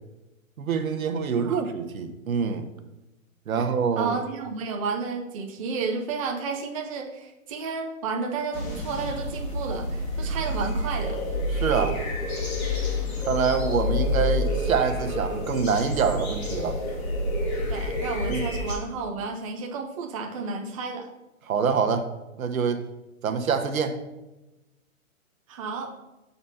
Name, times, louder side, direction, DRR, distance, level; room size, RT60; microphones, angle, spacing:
voice 1, 0.6-2.7 3.5-4.1 11.5-12.0 13.2-16.8 18.3-18.4 21.5-22.1 22.4-22.8 23.2-24.0, right 6 dB, 75° right, 8 dB, 1.0 m, -25 dB
voice 2, 4.0-11.2 17.7-21.1 25.5-25.9, right 4 dB, 25° right, 1 dB, 0.5 m, -32 dB
sound 1, 8.5-18.7, left 1 dB, 50° left, 2.3 m, -28 dB
7.0 x 4.2 x 5.5 m, 1.0 s
hypercardioid pair, 155°, 41 cm